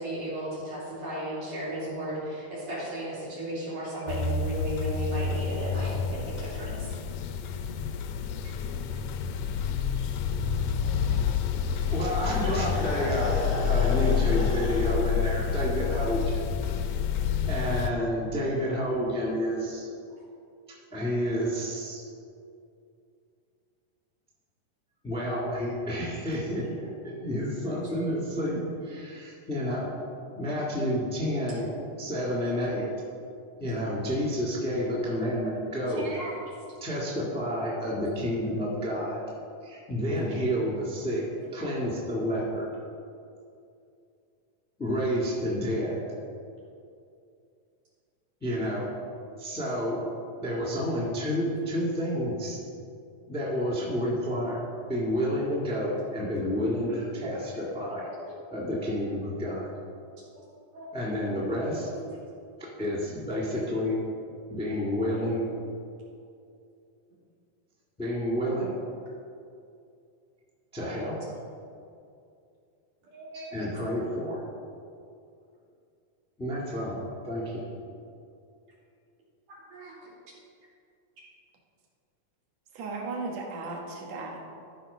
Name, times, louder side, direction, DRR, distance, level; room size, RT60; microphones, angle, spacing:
voice 1, 0.0-6.9 12.9-13.0 35.9-36.4 55.2-55.3 60.7-60.9 61.9-62.2 73.1-73.5 73.7-73.8 79.7-79.9, right 1 dB, 80° right, -7 dB, 4.4 m, -35 dB
sound 1, 4.1-17.9, left 7 dB, 80° left, 1.7 m, -28 dB
sound 2, 10.8-14.9, left 3 dB, 60° left, 1.0 m, -36 dB
voice 2, 11.9-13.4 13.7-16.4 17.4-19.9 20.9-22.0 25.0-29.9 30.3-31.7 32.0-32.8 33.6-36.1 36.8-39.2 39.6-41.2 41.5-42.7 44.8-46.0 48.4-48.9 49.4-50.0 50.4-52.6 53.3-54.6 54.9-58.1 58.5-59.7 60.9-61.9 62.6-64.0 64.5-65.4 68.0-68.7 70.7-71.2 73.5-74.4 76.4-77.6, equal, 5° left, -5 dB, 1.1 m, -30 dB
voice 3, 82.7-84.5, right 3 dB, 65° right, 0 dB, 2.3 m, -36 dB
13.5 x 5.0 x 5.5 m, 2.5 s
omnidirectional pair, 3.6 m